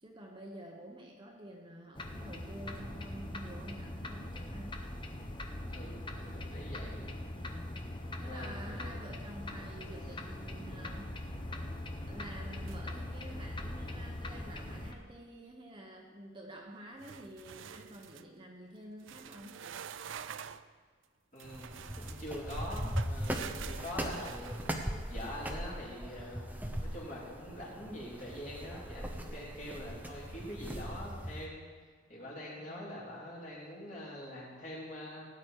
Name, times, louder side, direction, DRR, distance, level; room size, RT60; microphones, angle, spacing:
voice 1, 0.0-4.8 6.4-6.5 7.4-7.8 8.2-11.2 12.1-19.6 32.6-32.9, right 1 dB, 25° right, 0 dB, 1.2 m, -49 dB
sound 1, 2.0-14.9, left 1 dB, 25° left, 0.9 m, -41 dB
voice 2, 5.7-7.3 8.2-9.1 9.6-9.7 10.1-10.2 21.3-24.8 25.1-31.6 32.1-35.3, left 1 dB, 40° left, -5 dB, 3.8 m, -44 dB
sound 2, 12.7-13.2 13.5-13.9 17.0-18.3 19.0-20.7 21.4-25.2, right 8 dB, 70° right, 0.4 m, -47 dB
sound 3, 21.4-31.5, equal, 10° right, 0.9 m, -39 dB
17.0 x 9.5 x 4.8 m, 1.5 s
head